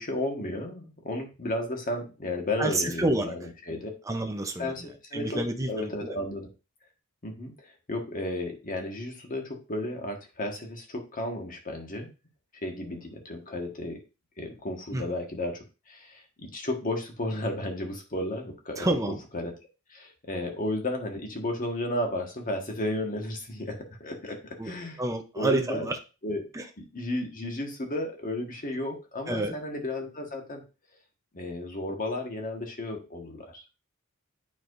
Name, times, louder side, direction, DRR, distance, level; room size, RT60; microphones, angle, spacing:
voice 1, 0.0-3.9 4.6-5.4 5.7-6.5 7.2-12.1 12.6-14.0 14.4-18.9 19.3-19.5 19.9-25.0 25.3-25.9 26.2-26.5 26.8-30.6 31.3-33.7, left 1 dB, 40° left, 2 dB, 1.5 m, -33 dB
voice 2, 2.6-3.3 3.7-4.7 5.1-6.2 14.9-15.1 18.8-19.2 24.6-26.0 26.5-26.7 29.3-29.5, right 2 dB, 15° right, 4 dB, 0.6 m, -29 dB
9.1 x 4.8 x 2.6 m, 0.31 s
head